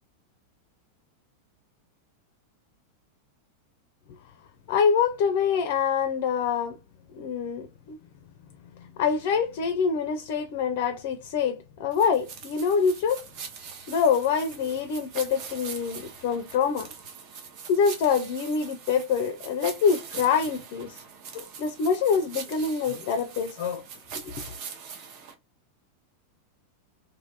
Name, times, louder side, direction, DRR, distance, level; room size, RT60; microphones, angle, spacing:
voice 1, 4.7-6.8 7.1-8.0 9.0-13.2 13.9-16.9 17.7-21.0 21.3-23.8 24.2-24.3, left 6 dB, 45° left, 0.4 m, -25 dB
sound 1, 11.9-25.3, right 6 dB, 45° right, 0.7 m, -42 dB
3.2 x 2.5 x 2.7 m
figure-of-eight pair, 90°, 0 cm